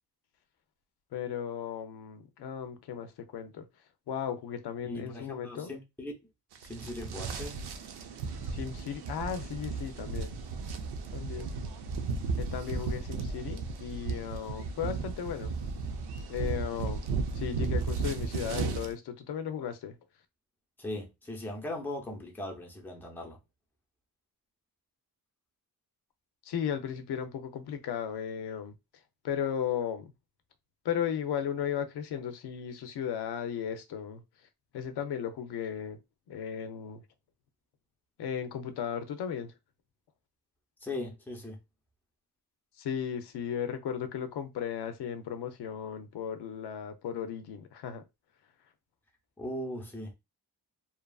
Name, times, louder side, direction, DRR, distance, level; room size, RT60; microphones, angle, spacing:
voice 1, 1.1-3.7 4.1-5.7 8.4-10.3 11.1-11.5 12.4-15.5 16.3-17.0 17.3-20.0 26.4-28.8 29.2-30.1 30.8-36.0 36.3-37.0 38.2-39.5 42.8-48.0, left 8 dB, 90° left, 0.6 m, -35 dB
voice 2, 4.8-6.1 6.6-7.6 20.8-23.4 40.8-41.6 49.4-50.1, left 1 dB, 5° left, 0.6 m, -39 dB
sound 1, 6.5-18.9, right 4 dB, 85° right, 0.6 m, -35 dB
2.8 x 2.4 x 2.3 m
wide cardioid pair, 150°, 39 cm